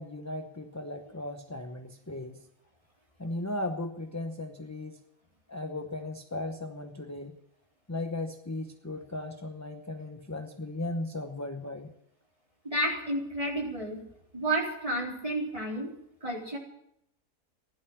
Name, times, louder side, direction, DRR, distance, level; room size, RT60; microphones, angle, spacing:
voice 1, 0.0-2.4 3.2-5.0 5.5-7.4 7.9-11.9, left 2 dB, 15° left, 5 dB, 0.7 m, -36 dB
voice 2, 12.6-14.0 14.3-15.9 16.2-16.6, right 1 dB, 20° right, -2 dB, 4.0 m, -31 dB
16.0 x 12.0 x 7.6 m, 0.75 s
omnidirectional pair, 1.7 m